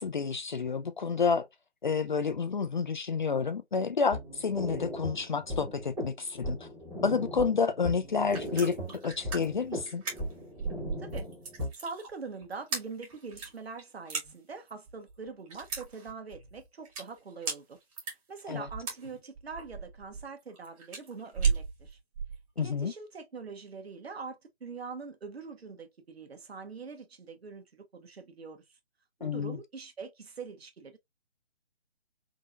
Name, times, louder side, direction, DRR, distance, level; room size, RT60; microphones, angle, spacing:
voice 1, 0.0-1.5 1.8-6.6 7.0-8.8 9.0-10.0 18.5-18.7 22.6-22.9 29.2-29.6, left 5 dB, 45° left, 0.4 m, -29 dB
sound 1, 4.1-11.7, equal, 5° right, 0.6 m, -38 dB
sound 2, 8.1-22.4, right 5 dB, 30° right, 1.7 m, -36 dB
voice 2, 11.7-17.8 18.3-22.0 22.6-28.8 29.2-31.0, right 4 dB, 65° right, 1.2 m, -43 dB
3.7 x 2.9 x 2.3 m
figure-of-eight pair, 150°, 34 cm